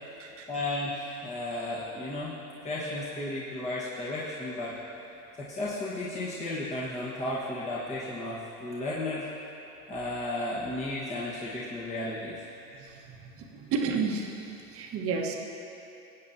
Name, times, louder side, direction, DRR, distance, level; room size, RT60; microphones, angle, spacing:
voice 1, 0.5-2.3 2.6-4.8 5.4-9.3 9.9-12.4, left 2 dB, 15° left, -7 dB, 1.4 m, -34 dB
voice 2, 12.8-14.3 14.7-15.4, right 5 dB, 30° right, 1 dB, 1.3 m, -32 dB
19.5 x 8.6 x 2.8 m, 2.9 s
hypercardioid pair, 110°, 45 cm